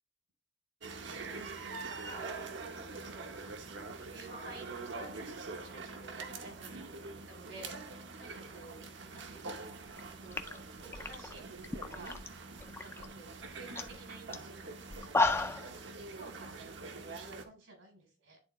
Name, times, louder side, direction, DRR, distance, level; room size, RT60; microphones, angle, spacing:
sound 1, 0.8-17.4, right 3 dB, 70° right, 0.8 m, -45 dB
voice 1, 1.6-3.3 4.0-7.8 8.2-10.4 10.8-12.2 12.8-15.8 16.1-18.4, right 2 dB, 90° right, 2 dB, 3.1 m, -53 dB
sound 2, 10.0-10.1 10.3-12.3 12.6-13.1 13.4-13.5 13.8-14.0 14.3-14.4 14.9-15.7, left 3 dB, 15° left, 0.3 m, -33 dB
10.5 x 3.7 x 3.0 m, 0.33 s
head